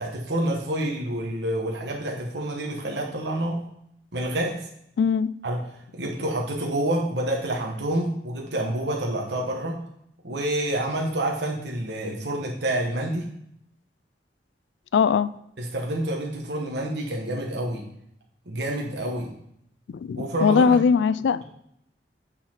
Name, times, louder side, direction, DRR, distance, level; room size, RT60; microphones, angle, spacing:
voice 1, 0.0-3.6 4.1-4.6 5.4-5.6 5.9-9.8 10.2-13.3 15.6-17.8 18.5-19.3 20.1-20.8, right 1 dB, 75° right, -1 dB, 1.2 m, -28 dB
voice 2, 5.0-5.3 14.9-15.3 20.0-21.4, left 6 dB, 80° left, 15 dB, 0.3 m, -20 dB
8.7 x 4.1 x 4.3 m, 0.73 s
head